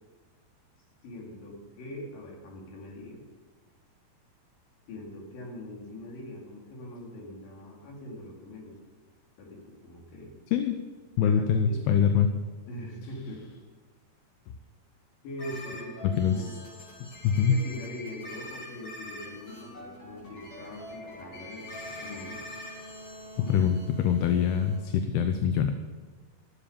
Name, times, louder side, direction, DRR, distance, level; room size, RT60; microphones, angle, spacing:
voice 1, 1.0-3.2 4.9-8.8 9.4-10.3 11.2-11.8 12.7-13.5 15.2-16.5 17.5-22.4 23.4-23.6, left 1 dB, 65° left, -2 dB, 4.2 m, -42 dB
voice 2, 11.2-12.3 16.0-16.4 17.0-17.6 23.5-25.7, left 7 dB, 80° left, 7 dB, 2.6 m, -24 dB
sound 1, 15.4-24.8, left 1 dB, 40° left, 3.5 m, -44 dB
15.0 x 7.4 x 7.0 m, 1.4 s
omnidirectional pair, 4.5 m